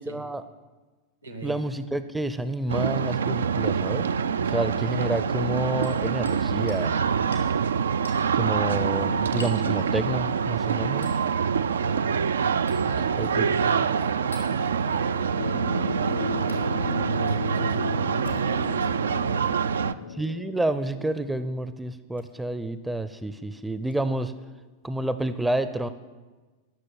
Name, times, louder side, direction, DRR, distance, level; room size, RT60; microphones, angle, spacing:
voice 1, 0.1-0.4 1.4-4.1 4.4-6.9 8.3-11.1 13.2-13.5 20.2-24.3 24.8-25.9, right 1 dB, 5° right, 12 dB, 0.5 m, -29 dB
voice 2, 1.2-1.6 11.6-12.1 12.8-15.6 16.0-19.8, right 2 dB, 85° right, 5 dB, 1.6 m, -39 dB
sound 1, 2.7-19.9, right 6 dB, 65° right, 0.3 m, -25 dB
Hammer, 5.8-6.4 6.7-6.9 7.3-7.5 8.0-8.2 9.4-9.7 11.0-11.2 12.7-12.9 14.3-14.5 16.5-16.6 18.1-18.9 19.6-19.8 21.0-21.2 22.1-22.3 23.9-24.0, left 2 dB, 85° left, 1.8 m, -43 dB
sound 2, 15.4-21.6, left 8 dB, 65° left, 0.3 m, -37 dB
12.0 x 6.5 x 7.3 m, 1.3 s
figure-of-eight pair, 90°, 0 cm